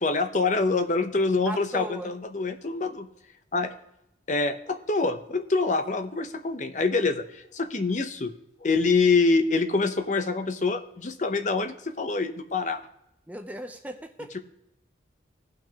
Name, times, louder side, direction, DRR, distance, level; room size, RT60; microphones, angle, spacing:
voice 1, 0.0-3.1 3.5-3.7 4.3-8.3 8.6-12.8, left 3 dB, 40° left, 7 dB, 0.7 m, -25 dB
voice 2, 1.5-2.1 13.3-14.4, right 1 dB, 10° right, 6 dB, 0.6 m, -37 dB
17.5 x 6.0 x 2.9 m, 0.83 s
head